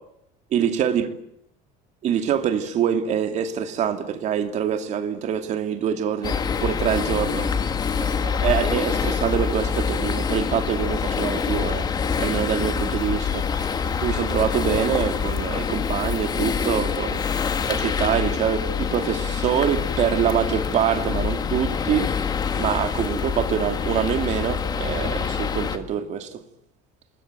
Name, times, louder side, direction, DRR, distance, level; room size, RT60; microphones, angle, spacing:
voice 1, 0.5-1.1 2.0-7.5 8.0-11.9 12.2-13.7 14.0-17.2 17.7-22.2 22.6-26.4, right 9 dB, 40° right, 2.6 m, -25 dB
sound 1, 6.2-25.8, left 6 dB, 20° left, 1.6 m, -25 dB
27.5 x 20.5 x 9.2 m
cardioid pair, 175°, 19 cm